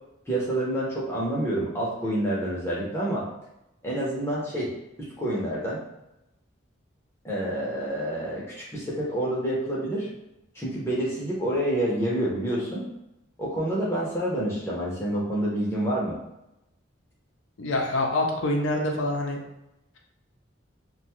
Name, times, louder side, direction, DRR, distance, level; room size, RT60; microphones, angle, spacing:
voice 1, 0.3-3.2 3.8-4.7 5.0-5.8 7.2-10.1 10.5-12.8 13.4-16.2, right 1 dB, 15° left, -6 dB, 0.7 m, -28 dB
voice 2, 17.6-19.4, left 2 dB, 75° left, 1 dB, 0.5 m, -26 dB
2.5 x 2.2 x 3.0 m, 0.89 s
head